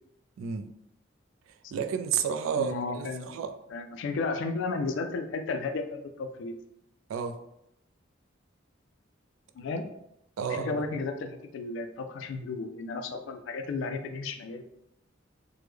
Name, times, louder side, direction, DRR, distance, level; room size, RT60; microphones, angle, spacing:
voice 1, 0.4-0.7 1.7-3.5 7.1-7.4 10.4-10.8, right 7 dB, 85° right, 0.3 m, -31 dB
voice 2, 2.6-3.3 3.7-6.5 9.6-9.9 10.5-14.6, left 3 dB, 65° left, 0.3 m, -33 dB
3.2 x 2.1 x 3.3 m
head